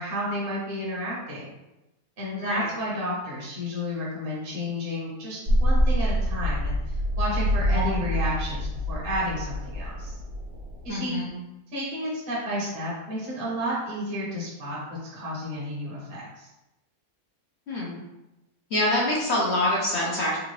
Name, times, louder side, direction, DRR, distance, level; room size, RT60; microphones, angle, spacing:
voice 1, 0.0-1.5 2.2-6.8 7.2-10.1 10.8-11.2 11.7-16.5, equal, 40° right, -6 dB, 0.9 m, -31 dB
voice 2, 2.3-2.7 7.7-7.9 10.9-11.4 17.7-18.0 18.7-20.4, left 1 dB, 60° left, -5 dB, 0.8 m, -26 dB
sound 1, 5.5-10.9, equal, 80° right, 0.5 m, -26 dB
3.6 x 2.4 x 3.1 m, 0.98 s
omnidirectional pair, 1.7 m